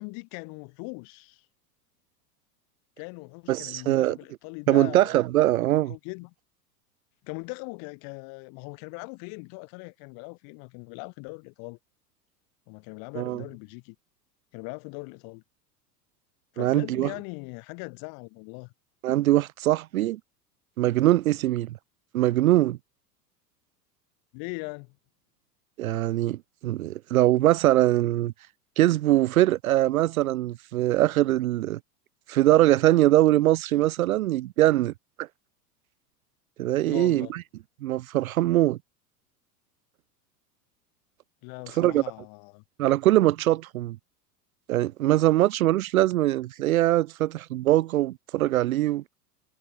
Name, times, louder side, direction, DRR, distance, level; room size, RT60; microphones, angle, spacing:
voice 1, 0.0-1.4 3.0-5.1 5.9-6.3 7.2-11.8 12.7-14.0 14.5-15.4 16.5-18.7 24.3-25.0 36.8-37.3 41.4-42.6, left 36 dB, 45° left, 3.5 m, -40 dB
voice 2, 3.5-4.2 4.7-5.9 13.2-13.4 16.6-17.1 19.0-20.2 20.8-21.8 22.1-22.8 25.8-28.3 28.8-31.8 32.3-34.9 35.2-35.3 36.6-37.4 37.8-38.8 41.7-42.0 42.8-44.0 44.7-49.0, right 15 dB, 60° right, 0.6 m, -22 dB
figure-of-eight pair, 85°, 48 cm